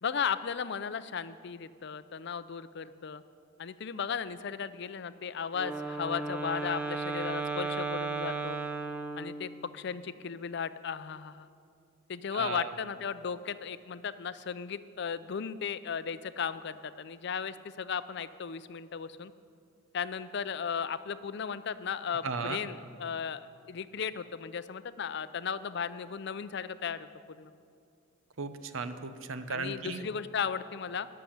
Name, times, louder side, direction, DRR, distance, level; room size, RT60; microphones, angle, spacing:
voice 1, 0.0-3.2 3.6-8.6 9.2-11.5 12.1-19.3 19.9-27.1 27.4-27.5 29.5-31.1, left 6 dB, 55° left, 14 dB, 0.5 m, -36 dB
Wind instrument woodwind instrument, 5.5-9.7, right 3 dB, 5° right, 0.6 m, -35 dB
voice 2, 12.3-12.7 22.2-22.6 28.4-30.0, right 4 dB, 75° right, 9 dB, 0.8 m, -36 dB
14.0 x 6.8 x 10.0 m, 2.3 s
head